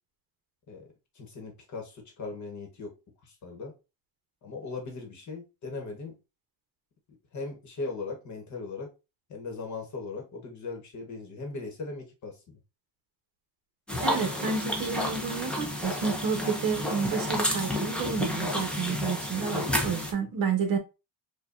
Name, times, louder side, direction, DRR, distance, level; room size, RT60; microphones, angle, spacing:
voice 1, 0.7-2.9 3.2-3.7 4.4-6.1 7.3-8.9 9.3-12.6, left 3 dB, 40° left, 1.0 m, -39 dB
sound 1, 13.9-20.1, left 1 dB, 5° left, 0.4 m, -30 dB
voice 2, 14.0-20.8, right 6 dB, 45° right, 0.9 m, -30 dB
4.8 x 2.3 x 2.4 m
cardioid pair, 170°, 45 cm